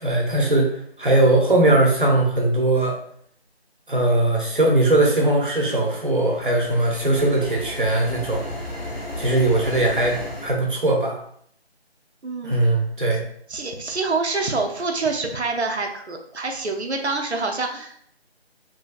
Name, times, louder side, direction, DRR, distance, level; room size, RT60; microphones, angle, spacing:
voice 1, 0.0-3.0 3.9-8.4 9.2-10.2 10.4-11.2 12.4-13.2, right 2 dB, 50° right, 0 dB, 0.7 m, -20 dB
sound 1, 6.0-10.6, left 1 dB, 65° left, 0.8 m, -34 dB
voice 2, 12.2-12.6 13.5-18.1, right 3 dB, 90° right, 3 dB, 0.6 m, -26 dB
3.0 x 2.7 x 2.4 m, 0.66 s
figure-of-eight pair, 165°, 32 cm